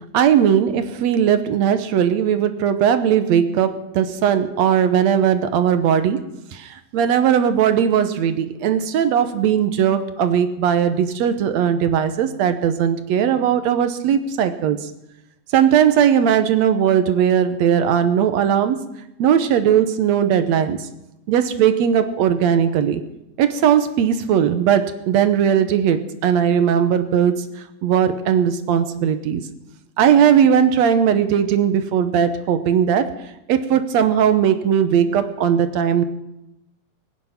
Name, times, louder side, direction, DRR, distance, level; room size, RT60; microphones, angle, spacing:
voice 1, 0.1-6.2 6.5-14.8 15.5-18.8 19.2-20.9 21.3-23.0 23.4-27.4 27.8-29.4 30.0-33.1 33.5-36.0, right 8 dB, 70° right, 10 dB, 2.0 m, -18 dB
21.5 x 9.7 x 5.9 m, 0.87 s
omnidirectional pair, 3.5 m